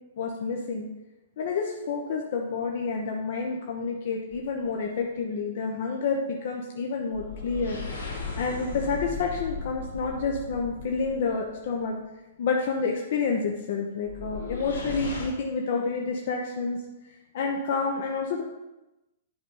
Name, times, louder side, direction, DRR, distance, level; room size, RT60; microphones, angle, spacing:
voice 1, 0.2-0.9 1.4-7.8 8.3-11.9 12.4-18.4, left 4 dB, 50° left, 0 dB, 0.9 m, -29 dB
sound 1, 4.3-4.7 7.1-11.7 14.1-15.3, left 4 dB, 80° left, 2.5 m, -37 dB
10.5 x 5.0 x 3.8 m, 1.0 s
figure-of-eight pair, 110°, 0 cm